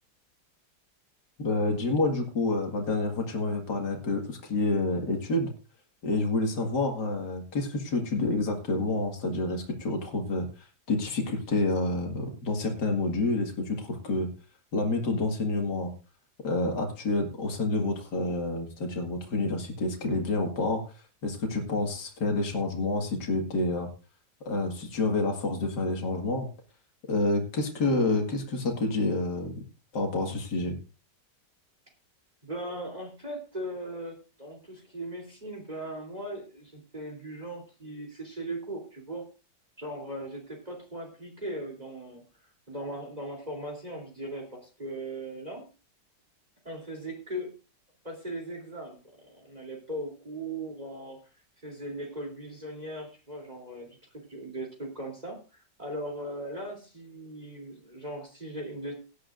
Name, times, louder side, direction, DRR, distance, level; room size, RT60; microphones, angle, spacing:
voice 1, 1.4-5.5 6.0-10.5 10.9-14.3 14.7-15.9 16.4-20.8 21.2-23.9 24.5-26.5 27.1-29.5 29.9-30.8, left 2 dB, 65° left, 2 dB, 2.6 m, -28 dB
voice 2, 32.4-39.2 39.8-42.2 42.7-45.6 46.7-47.5 48.0-51.2 51.6-53.9 54.1-58.9, right 1 dB, 20° right, 1 dB, 3.5 m, -38 dB
17.5 x 11.5 x 2.6 m, 0.33 s
omnidirectional pair, 1.9 m